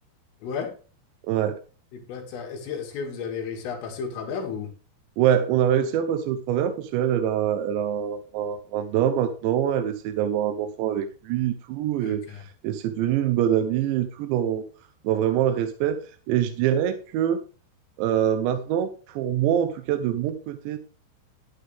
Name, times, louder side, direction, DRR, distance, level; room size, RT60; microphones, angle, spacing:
voice 1, 0.4-0.7 1.9-4.7 12.0-12.4, left 6 dB, 80° left, 2 dB, 4.9 m, -33 dB
voice 2, 1.3-1.6 5.2-14.7 15.0-17.4 18.0-20.8, right 10 dB, 75° right, 8 dB, 2.9 m, -24 dB
11.5 x 11.5 x 3.5 m, 0.36 s
omnidirectional pair, 5.7 m